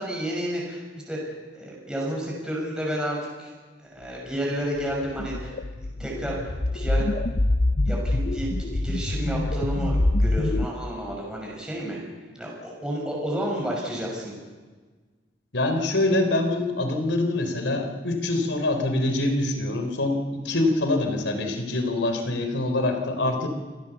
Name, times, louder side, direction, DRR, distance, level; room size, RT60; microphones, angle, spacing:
voice 1, 0.0-3.5 3.8-5.6 6.0-7.0 7.8-12.0 12.3-14.4, equal, 5° right, -3 dB, 6.1 m, -31 dB
sound 1, 4.9-10.6, left 1 dB, 50° left, 0.8 m, -25 dB
voice 2, 15.5-23.5, left 2 dB, 85° left, 6 dB, 3.9 m, -25 dB
28.0 x 19.0 x 7.0 m, 1.4 s
head